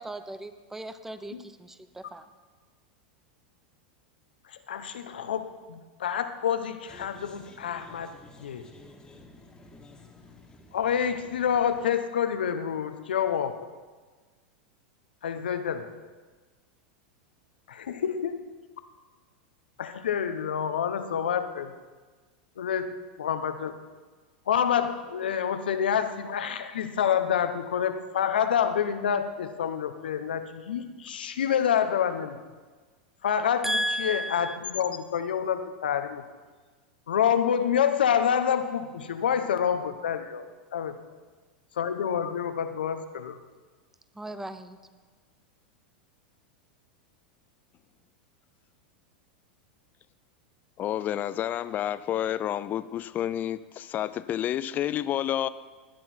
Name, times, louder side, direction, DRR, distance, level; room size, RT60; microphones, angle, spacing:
voice 1, 0.0-2.2 33.6-34.6 44.2-44.8, equal, 5° right, 11 dB, 0.9 m, -34 dB
voice 2, 4.5-8.7 10.7-13.7 15.2-16.0 17.7-18.4 19.8-21.7 22.6-23.8 24.5-32.4 33.2-36.2 37.1-41.0 41.8-43.4, left 8 dB, 80° left, 9 dB, 1.1 m, -28 dB
sound 1, 6.9-11.9, left 2 dB, 15° left, 2.2 m, -52 dB
voice 3, 50.8-55.5, left 11 dB, 35° left, 16 dB, 0.6 m, -29 dB
17.0 x 10.5 x 4.5 m, 1.4 s
hypercardioid pair, 100°, 5 cm